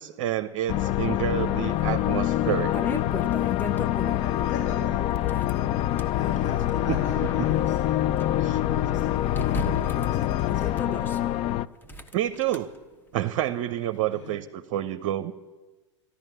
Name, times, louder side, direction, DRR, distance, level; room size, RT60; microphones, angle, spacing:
voice 1, 0.0-2.7 8.4-8.6 9.4-9.5 12.1-12.7 13.1-15.3, right 12 dB, 50° right, 10 dB, 0.7 m, -29 dB
sound 1, 0.7-11.7, left 13 dB, 35° left, 0.4 m, -25 dB
sound 2, 1.8-1.9 2.4-4.5 5.1-6.2 6.8-8.2 8.6-8.7 9.3-11.2 11.8-12.6, left 2 dB, 10° left, 1.2 m, -36 dB
voice 2, 4.2-5.1 6.1-7.8 8.5-11.2 14.1-14.4, left 3 dB, 70° left, -1 dB, 5.3 m, -41 dB
14.0 x 11.5 x 7.6 m, 1.2 s
hypercardioid pair, 95°, 16 cm